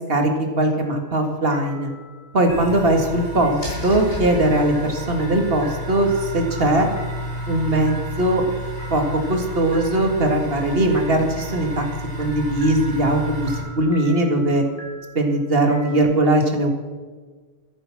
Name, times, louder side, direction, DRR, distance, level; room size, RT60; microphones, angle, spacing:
voice 1, 0.6-1.9 2.3-6.1 6.3-6.9 7.5-8.4 8.9-9.0 9.3-11.9 12.2-14.6 15.2-16.7, right 1 dB, 55° right, 3 dB, 2.1 m, -20 dB
sound 1, 0.8-1.3 1.5-16.0, right 1 dB, 15° left, 4.2 m, -44 dB
sound 2, 2.5-13.6, equal, 60° left, 6.0 m, -31 dB
13.5 x 10.5 x 5.9 m, 1.4 s
omnidirectional pair, 1.2 m